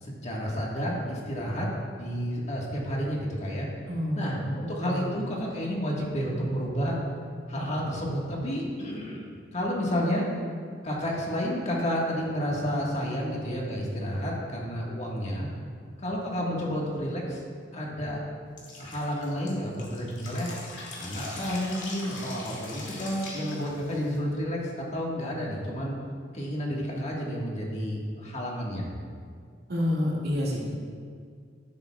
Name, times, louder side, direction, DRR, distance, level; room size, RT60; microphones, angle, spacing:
voice 1, 0.0-1.7 2.0-3.7 4.1-7.0 7.5-10.2 10.8-15.5 16.0-17.4 17.7-18.2 18.8-20.5 21.0-26.0 26.3-28.9, equal, 40° left, -3 dB, 1.7 m, -30 dB
voice 2, 3.9-5.2 29.7-30.6, left 1 dB, 60° right, -5 dB, 2.3 m, -29 dB
Drip, 18.6-24.2, left 2 dB, 85° left, 2.3 m, -41 dB
11.5 x 10.5 x 2.4 m, 2.1 s
head